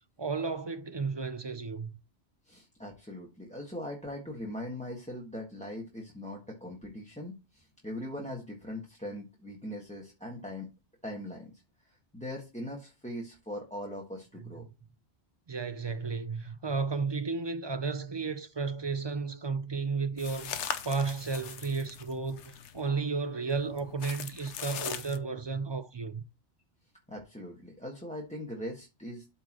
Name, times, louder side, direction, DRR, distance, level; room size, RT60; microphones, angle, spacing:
voice 1, 0.2-2.0 14.4-14.7 15.5-26.2, right 4 dB, 35° right, 0.4 m, -33 dB
voice 2, 2.5-10.7 11.0-11.5 11.9-14.6 27.1-29.3, left 1 dB, 5° left, 1.4 m, -41 dB
sound 1, 20.2-22.9 23.5-25.2, left 8 dB, 80° left, 1.0 m, -40 dB
13.0 x 4.4 x 3.0 m
omnidirectional pair, 1.2 m